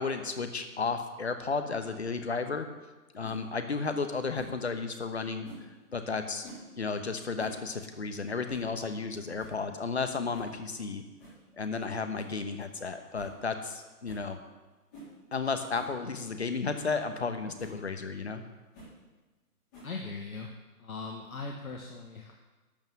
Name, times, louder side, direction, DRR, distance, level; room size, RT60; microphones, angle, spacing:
voice 1, 0.0-2.7 3.1-5.5 5.9-11.0 11.6-14.4 15.3-18.4, left 4 dB, 45° left, 7 dB, 1.1 m, -33 dB
sound 1, 3.2-3.4 4.3-4.6 5.4-5.7 6.4-6.7 7.2-7.6 7.9-8.0 8.5-8.7 9.1-9.2 9.4-9.6 10.3-10.5 11.2-11.4 12.1-12.4 12.7-12.8 13.1-13.3 13.6-13.7 14.0-14.3 14.9-15.1 15.7-15.9 16.4-16.5 16.7-16.9 17.6-17.8 18.7-19.0 19.7-20.1, right 1 dB, 10° left, 3.3 m, -48 dB
voice 2, 19.8-20.5 20.8-22.3, left 3 dB, 60° left, 1 dB, 1.4 m, -39 dB
12.0 x 5.7 x 7.5 m, 1.2 s
figure-of-eight pair, 170°, 47 cm